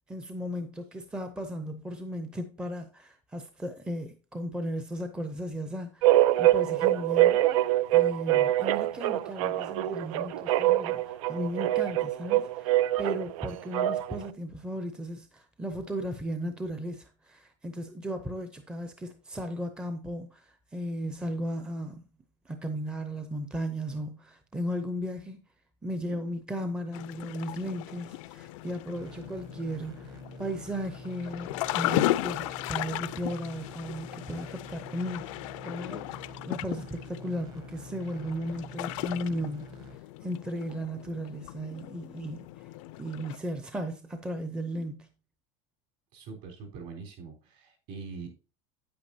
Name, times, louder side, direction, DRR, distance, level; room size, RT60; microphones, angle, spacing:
voice 1, 0.1-7.6 7.9-22.0 22.5-25.4 25.8-35.3 35.6-39.8 40.2-42.7 43.0-45.1, equal, 5° right, 0.6 m, -36 dB
sound 1, 6.0-14.2, right 15 dB, 85° right, 0.6 m, -24 dB
sound 2, 26.9-43.4, left 17 dB, 75° left, 0.5 m, -36 dB
sound 3, 29.0-40.0, right 2 dB, 25° right, 1.0 m, -48 dB
voice 2, 46.1-48.3, right 4 dB, 50° right, 4.0 m, -43 dB
9.2 x 8.6 x 2.7 m
cardioid pair, 170°, 17 cm